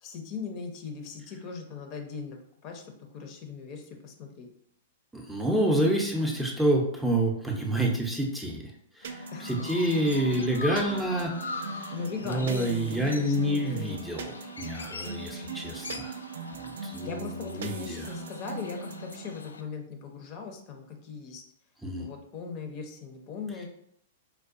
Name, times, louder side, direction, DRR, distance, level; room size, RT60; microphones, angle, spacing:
voice 1, 0.0-4.5 9.3-9.5 11.9-14.0 17.0-21.4 22.0-23.7, left 5 dB, 40° left, 3 dB, 0.6 m, -39 dB
voice 2, 5.1-11.9 12.2-16.2 16.5-18.1 21.8-22.1, right 1 dB, 5° right, -1 dB, 0.6 m, -28 dB
Chirp tweet, 9.0-19.6, left 4 dB, 90° left, 0.3 m, -43 dB
sound 1, 9.0-19.3, right 4 dB, 70° right, 0.3 m, -40 dB
4.5 x 2.2 x 2.5 m, 0.70 s
hypercardioid pair, 115°, 0 cm